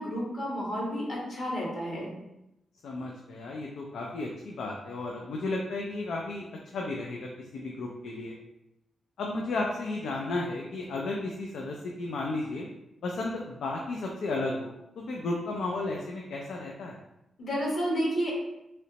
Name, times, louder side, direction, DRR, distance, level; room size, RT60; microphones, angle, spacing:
voice 1, 0.0-2.1 17.4-18.3, equal, 45° left, -3 dB, 1.1 m, -31 dB
voice 2, 2.8-8.4 9.2-12.7 13.0-17.0, left 2 dB, 80° left, 0 dB, 0.4 m, -34 dB
3.1 x 2.9 x 2.8 m, 0.89 s
wide cardioid pair, 170°, 0 cm